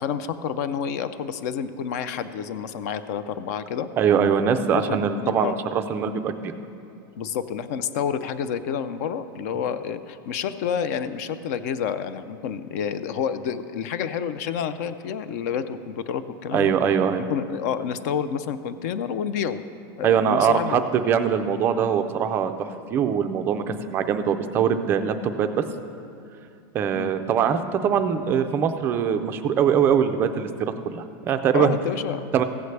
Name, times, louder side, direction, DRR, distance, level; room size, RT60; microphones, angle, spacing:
voice 1, 0.0-3.9 4.4-5.6 7.2-19.6 20.0-20.8 26.9-27.1 31.5-32.2, left 7 dB, 50° left, 12 dB, 0.4 m, -29 dB
voice 2, 4.0-6.5 16.5-17.2 20.0-25.6 26.7-31.8 32.3-32.4, right 7 dB, 20° right, 8 dB, 0.3 m, -22 dB
15.0 x 8.1 x 3.2 m, 2.5 s
supercardioid pair, 175°, 11 cm